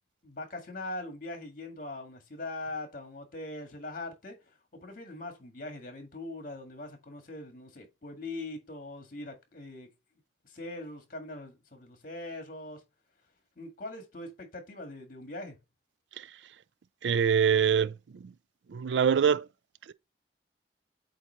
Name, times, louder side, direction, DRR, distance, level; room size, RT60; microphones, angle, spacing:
voice 1, 0.2-9.9 10.4-12.8 13.6-15.6, left 2 dB, 50° left, 1.8 m, -41 dB
voice 2, 17.0-17.9 18.2-18.3 18.7-19.5 19.9-20.0, right 7 dB, 80° right, 0.4 m, -24 dB
8.1 x 3.0 x 4.4 m
head